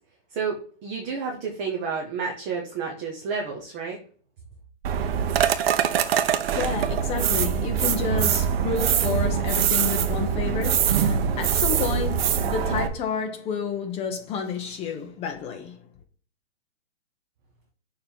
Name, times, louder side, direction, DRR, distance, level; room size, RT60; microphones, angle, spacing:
voice 1, 0.3-4.0, right 5 dB, 10° right, 0.3 m, -30 dB
sound 1, 4.8-12.9, right 8 dB, 55° right, 0.8 m, -23 dB
voice 2, 6.1-15.8, left 6 dB, 15° left, 0.8 m, -30 dB
6.7 x 2.9 x 5.3 m
hypercardioid pair, 140°, 36 cm